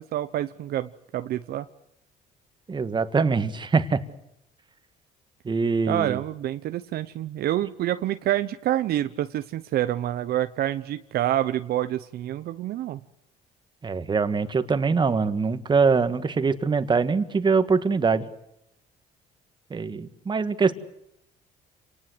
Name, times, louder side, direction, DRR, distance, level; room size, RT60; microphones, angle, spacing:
voice 1, 0.0-1.7 5.9-13.0, right 13 dB, 65° right, 11 dB, 0.9 m, -27 dB
voice 2, 2.7-4.0 5.5-6.2 13.8-18.3 19.7-20.7, right 5 dB, 25° right, 11 dB, 1.8 m, -23 dB
28.0 x 19.0 x 8.0 m, 0.80 s
cardioid pair, 110°, 17 cm